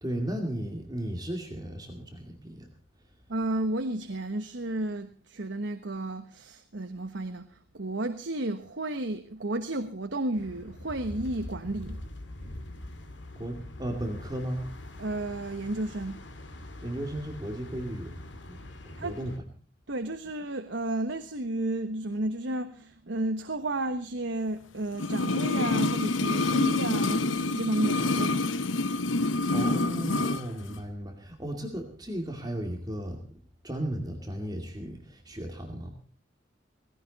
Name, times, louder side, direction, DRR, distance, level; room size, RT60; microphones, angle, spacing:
voice 1, 0.0-2.7 13.4-14.7 16.8-18.2 18.5-18.6 19.0-19.3 29.5-33.3 33.6-35.9, right 1 dB, 20° right, 2.4 m, -35 dB
voice 2, 3.3-12.1 15.0-16.2 18.9-19.2 19.9-28.4, right 1 dB, 70° right, 1.2 m, -32 dB
sound 1, 10.4-19.4, left 1 dB, 70° left, 2.2 m, -43 dB
sound 2, 24.9-30.4 30.7-30.8, left 2 dB, 90° left, 0.8 m, -27 dB
18.0 x 16.0 x 4.1 m
head